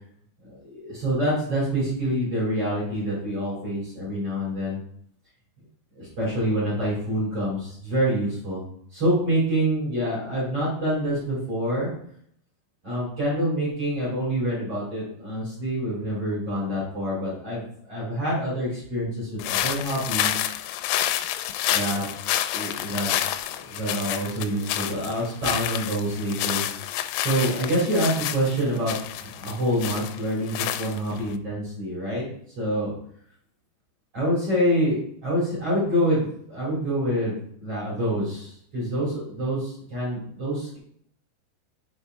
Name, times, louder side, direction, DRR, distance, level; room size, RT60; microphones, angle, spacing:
voice 1, 0.4-4.8 5.9-8.6 8.9-11.9 12.8-20.5 21.7-22.0 22.5-23.1 23.4-26.6 27.2-32.2 32.6-32.9 34.1-40.8, equal, 30° right, -7 dB, 3.5 m, -26 dB
sound 1, 19.4-31.3, left 12 dB, 85° left, 2.9 m, -29 dB
7.1 x 5.6 x 4.6 m, 0.66 s
omnidirectional pair, 5.7 m